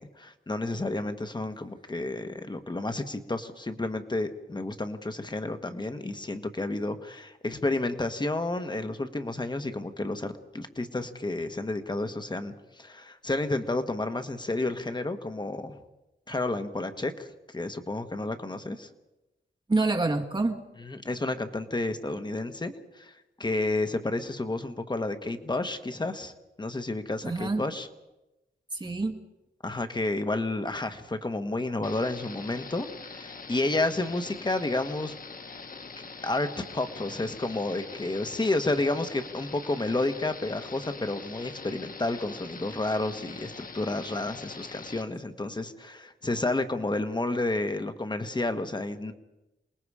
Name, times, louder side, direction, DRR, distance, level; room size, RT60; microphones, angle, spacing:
voice 1, 0.0-15.8 16.3-18.9 20.8-23.1 23.4-26.3 26.6-27.9 29.6-35.1 36.2-49.1, left 2 dB, 25° left, 8 dB, 1.3 m, -31 dB
voice 2, 19.7-20.6 27.2-27.6 28.7-29.2, right 3 dB, 25° right, 3 dB, 1.8 m, -27 dB
sound 1, 31.8-45.0, left 4 dB, 50° left, 1.4 m, -43 dB
28.0 x 20.0 x 4.9 m, 0.97 s
wide cardioid pair, 125°, 19 cm